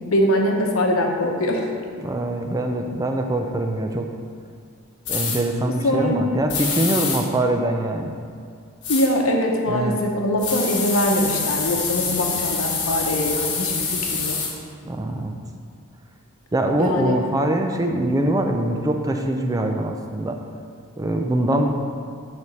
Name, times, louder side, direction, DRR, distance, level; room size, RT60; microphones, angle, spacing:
voice 1, 0.1-1.6 5.8-6.2 8.9-14.4 16.8-17.2, left 1 dB, 75° left, 1 dB, 0.9 m, -22 dB
voice 2, 2.0-4.1 5.1-8.2 9.7-10.0 14.8-15.3 16.5-20.4 21.0-21.7, right 1 dB, 15° right, 4 dB, 0.4 m, -23 dB
sound 1, 5.1-5.4 6.5-7.2 8.8-9.1 10.4-14.5, left 5 dB, 55° left, 1.2 m, -26 dB
6.8 x 3.4 x 6.2 m, 2.2 s
head